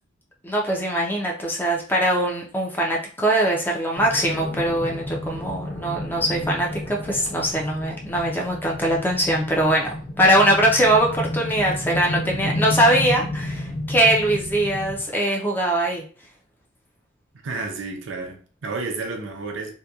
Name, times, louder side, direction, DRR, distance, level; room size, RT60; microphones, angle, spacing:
voice 1, 0.4-16.0, right 1 dB, 10° left, 0.5 m, -22 dB
sound 1, 3.9-15.0, left 1 dB, 90° left, 1.1 m, -31 dB
voice 2, 17.4-19.7, right 3 dB, 70° right, 0.5 m, -31 dB
2.8 x 2.2 x 2.3 m
head